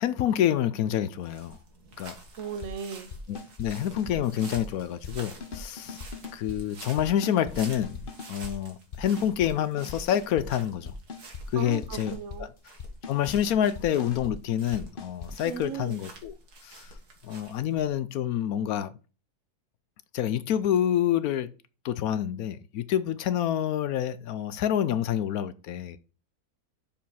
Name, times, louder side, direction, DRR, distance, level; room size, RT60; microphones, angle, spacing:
voice 1, 0.0-1.6 2.0-2.2 3.3-6.0 6.3-8.0 8.3-10.9 11.5-12.5 13.1-16.3 16.6-16.9 17.2-18.9 20.1-21.5 21.8-26.0, left 10 dB, 75° left, 1.0 m, -27 dB
sound 1, 1.2-17.9, right 2 dB, 80° right, 2.3 m, -49 dB
sound 2, 2.4-2.7 3.1-3.7 4.0-5.1 5.4-6.6 7.0-7.6 7.8-8.5 8.9-9.5 9.8-10.5 10.8-11.4 11.7-12.4 12.8-13.4 13.6-14.3 14.7-15.3, left 4 dB, 40° left, 1.0 m, -40 dB
voice 2, 2.4-3.1 11.5-12.5 15.4-16.0, right 7 dB, 55° right, 1.1 m, -36 dB
6.9 x 5.3 x 5.5 m
omnidirectional pair, 1.6 m